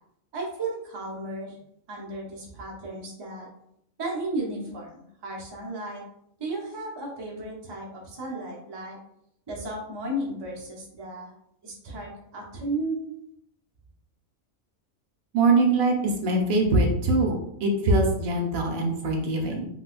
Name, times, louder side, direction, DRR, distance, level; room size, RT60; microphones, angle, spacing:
voice 1, 0.3-1.6 1.9-3.5 4.0-6.0 6.4-9.0 9.5-11.3 11.6-13.0, right 2 dB, 30° right, -2 dB, 0.5 m, -34 dB
voice 2, 15.3-19.7, right 2 dB, 80° right, 2 dB, 1.1 m, -23 dB
3.9 x 2.3 x 2.4 m, 0.75 s
omnidirectional pair, 1.4 m